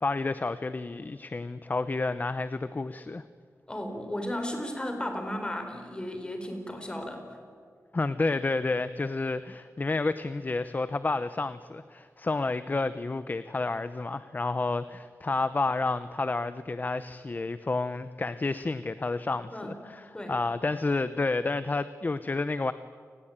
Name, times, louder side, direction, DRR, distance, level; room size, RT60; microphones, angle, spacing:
voice 1, 0.0-3.2 7.9-22.7, left 3 dB, 30° left, 13 dB, 0.7 m, -30 dB
voice 2, 3.7-7.4 19.5-19.8 20.1-20.3, left 1 dB, 15° left, 5 dB, 4.4 m, -35 dB
29.5 x 20.0 x 8.9 m, 2.2 s
wide cardioid pair, 135°, 6 cm